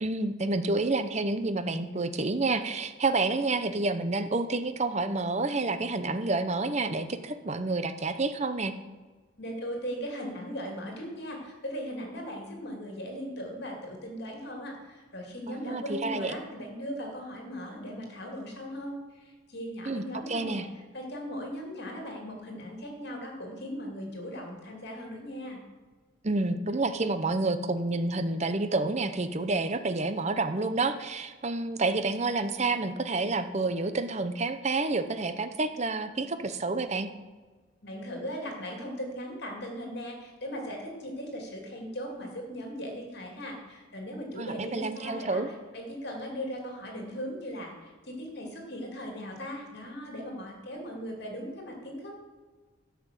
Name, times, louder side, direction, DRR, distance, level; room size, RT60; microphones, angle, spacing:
voice 1, 0.0-8.7 15.5-16.3 19.9-20.7 26.2-37.1 44.4-45.5, right 3 dB, 35° right, 10 dB, 0.7 m, -29 dB
voice 2, 9.4-20.7 20.9-25.6 37.8-45.4 45.7-52.2, equal, 55° left, 1 dB, 2.8 m, -38 dB
13.0 x 5.9 x 7.6 m, 1.4 s
head